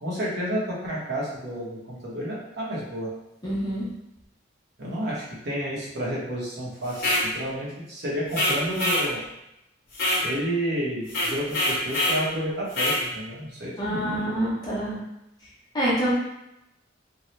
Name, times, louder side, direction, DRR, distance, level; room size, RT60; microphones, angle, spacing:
voice 1, 0.0-3.1 4.8-9.2 10.2-14.0, equal, 60° right, -6 dB, 1.0 m, -30 dB
voice 2, 3.4-3.8 13.8-15.0 15.7-16.1, right 1 dB, 20° left, -7 dB, 0.8 m, -26 dB
sound 1, 6.9-7.3 8.3-9.1 9.9-10.3 11.1-12.2 12.7-13.0, left 1 dB, 55° left, 1.0 m, -24 dB
2.7 x 2.2 x 3.1 m, 0.87 s
head